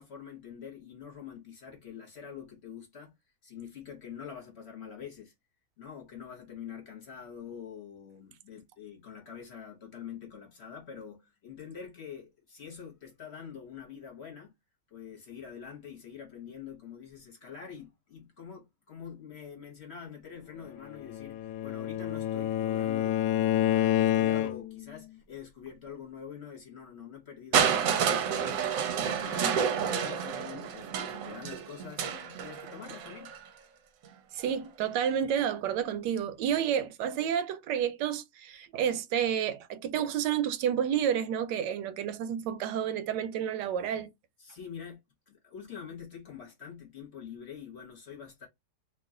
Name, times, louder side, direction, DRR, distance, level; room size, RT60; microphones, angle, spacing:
voice 1, 0.0-3.1 3.4-5.3 5.8-14.5 14.9-28.7 29.1-33.3 44.4-45.0 45.3-48.5, left 7 dB, 45° left, 1.0 m, -45 dB
Bowed string instrument, 20.9-24.9, left 12 dB, 90° left, 1.2 m, -28 dB
Crushing, 27.5-33.4 34.4-34.5, right 7 dB, 65° right, 0.9 m, -29 dB
voice 2, 34.3-44.1, right 9 dB, 90° right, 1.2 m, -30 dB
3.0 x 2.3 x 3.6 m
omnidirectional pair, 1.8 m